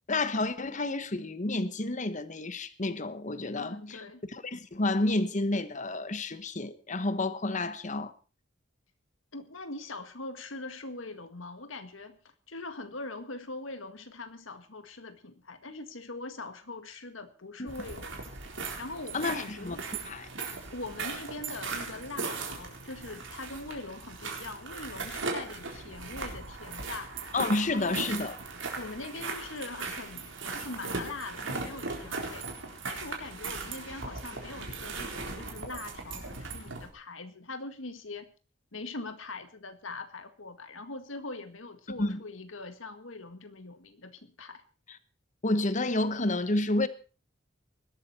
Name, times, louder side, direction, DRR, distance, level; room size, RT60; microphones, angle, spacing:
voice 1, 0.1-4.0 4.3-8.1 17.6-17.7 19.1-19.8 20.0-20.3 27.3-28.3 42.0-42.2 45.4-46.9, left 2 dB, 40° left, 1.2 m, -30 dB
voice 2, 3.6-4.2 9.3-12.2 12.5-18.2 18.8-19.8 20.4-27.1 27.7-28.1 28.8-32.5 32.9-38.3 38.7-44.6, left 3 dB, 85° left, 1.9 m, -42 dB
sound 1, 17.7-36.9, right 4 dB, 70° right, 4.0 m, -38 dB
20.5 x 12.5 x 4.3 m
head